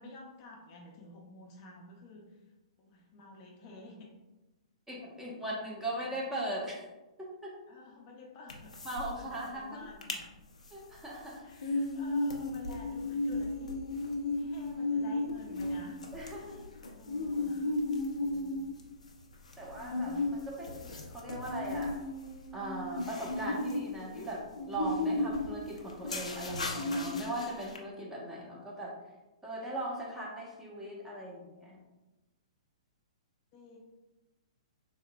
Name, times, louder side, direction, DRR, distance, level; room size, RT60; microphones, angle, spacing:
voice 1, 0.0-2.3 2.8-4.1 7.7-8.7 9.1-10.3 11.4-14.1 14.3-17.7 19.5-20.2 33.5-33.8, left 3 dB, 40° left, 0 dB, 0.6 m, -51 dB
voice 2, 4.9-6.8 7.2-7.5 8.8-9.8 10.7-11.4 16.1-16.7 18.2-18.6 19.6-20.2 20.5-22.0 22.5-29.0 29.4-31.8, right 1 dB, 10° right, -4 dB, 0.9 m, -39 dB
sound 1, 8.5-9.1 9.4-9.5 9.8-10.2 10.6-27.8, left 2 dB, 85° left, 0.6 m, -35 dB
3.5 x 3.5 x 2.2 m, 1.1 s
hypercardioid pair, 120°, 4 cm